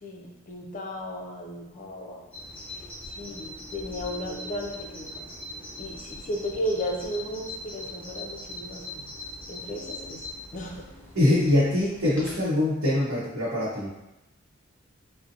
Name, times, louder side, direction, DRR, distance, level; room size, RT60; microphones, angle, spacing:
voice 1, 0.0-2.2 3.2-5.3 5.8-9.1 9.5-10.2 10.5-10.8, equal, 40° left, 0 dB, 0.4 m, -35 dB
Bird vocalization bird call bird song, 2.3-12.4, left 1 dB, 5° left, 0.9 m, -41 dB
voice 2, 11.1-13.9, left 1 dB, 80° right, -11 dB, 0.8 m, -23 dB
2.6 x 2.1 x 2.6 m, 0.94 s
head